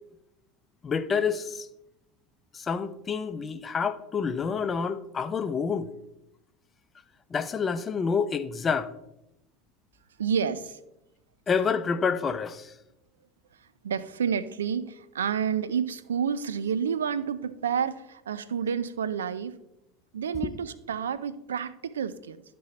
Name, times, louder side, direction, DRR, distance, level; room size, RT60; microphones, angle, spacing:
voice 1, 0.8-1.7 2.5-5.9 7.3-8.9 11.5-12.7 20.4-20.5, left 6 dB, 30° left, 0.6 m, -28 dB
voice 2, 10.2-10.8 13.6-19.6 20.1-22.4, right 7 dB, 90° right, 0.4 m, -29 dB
12.0 x 4.2 x 3.2 m
hypercardioid pair, 85°, 0 cm